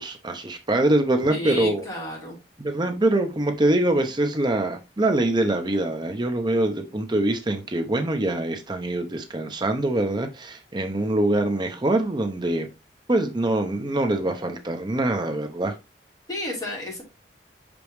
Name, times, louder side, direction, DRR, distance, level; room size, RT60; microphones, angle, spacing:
voice 1, 0.0-1.8 2.6-12.7 13.1-15.7, right 1 dB, 25° right, 0.7 m, -24 dB
voice 2, 1.3-2.4 16.3-17.0, left 2 dB, 20° left, 3.7 m, -31 dB
6.0 x 5.2 x 3.1 m
head